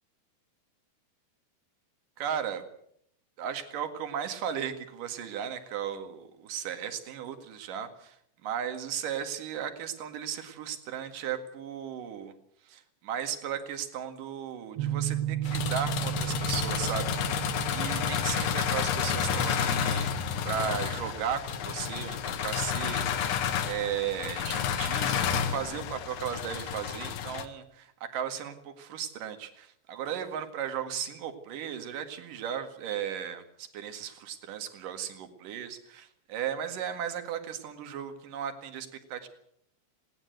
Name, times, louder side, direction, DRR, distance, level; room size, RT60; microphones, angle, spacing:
voice 1, 2.2-2.6 3.4-8.2 8.4-12.3 12.6-20.1 20.4-23.4 23.6-39.3, right 8 dB, 55° right, 7 dB, 3.2 m, -36 dB
sound 1, 14.8-23.5, right 11 dB, 80° right, 3.7 m, -36 dB
sound 2, 15.4-27.5, left 8 dB, 65° left, 2.7 m, -30 dB
20.0 x 17.5 x 8.0 m, 0.70 s
omnidirectional pair, 5.1 m